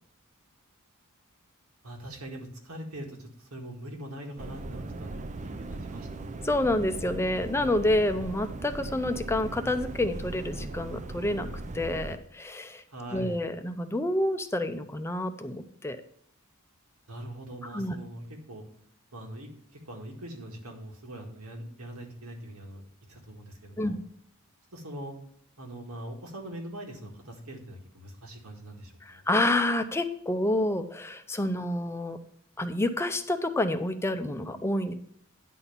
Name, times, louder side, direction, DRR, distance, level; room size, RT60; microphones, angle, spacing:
voice 1, 1.8-6.3 12.9-13.4 17.1-18.6 19.1-19.5 19.9-22.8 23.1-24.0 24.7-25.1 25.6-29.2, right 1 dB, 85° right, 1 dB, 2.0 m, -42 dB
sound 1, 4.4-12.2, right 2 dB, 35° right, 0.5 m, -38 dB
voice 2, 6.4-11.5 11.7-12.8 13.1-16.0 17.7-18.0 23.8-24.0 29.0-32.2 32.6-34.9, left 1 dB, 10° left, 9 dB, 0.6 m, -28 dB
10.0 x 4.2 x 7.0 m, 0.65 s
head